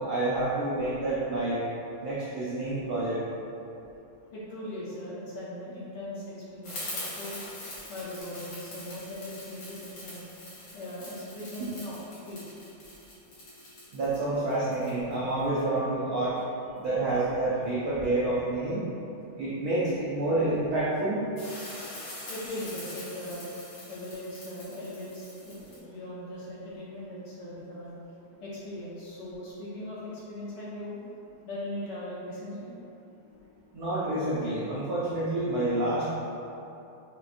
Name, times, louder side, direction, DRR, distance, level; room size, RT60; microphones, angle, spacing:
voice 1, 0.0-1.6 2.0-3.2 13.9-16.4 16.8-18.9 19.4-21.2 33.7-36.2, right 2 dB, 75° right, -8 dB, 0.8 m, -28 dB
voice 2, 4.3-7.4 7.9-10.3 10.7-12.0 12.3-12.4 22.3-23.5 23.9-28.0 28.4-31.0 31.5-32.7, left 1 dB, 65° left, -8 dB, 1.2 m, -39 dB
sound 1, 6.6-15.6 21.4-25.8, left 1 dB, 90° left, 2.2 m, -43 dB
5.0 x 3.0 x 2.5 m, 2.8 s
omnidirectional pair, 2.3 m